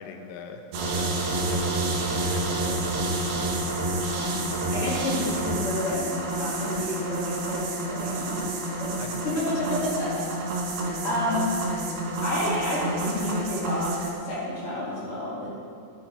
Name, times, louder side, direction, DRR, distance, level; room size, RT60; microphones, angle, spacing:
voice 1, 0.0-3.5 9.0-9.9, left 6 dB, 90° left, 6 dB, 2.9 m, -42 dB
sound 1, 0.7-14.1, right 2 dB, 65° right, 2.8 m, -29 dB
voice 2, 4.7-8.4 8.7-10.3 10.8-11.5 12.2-14.0 14.2-15.5, left 1 dB, 40° left, -8 dB, 2.6 m, -30 dB
12.0 x 9.0 x 4.7 m, 2.3 s
omnidirectional pair, 5.1 m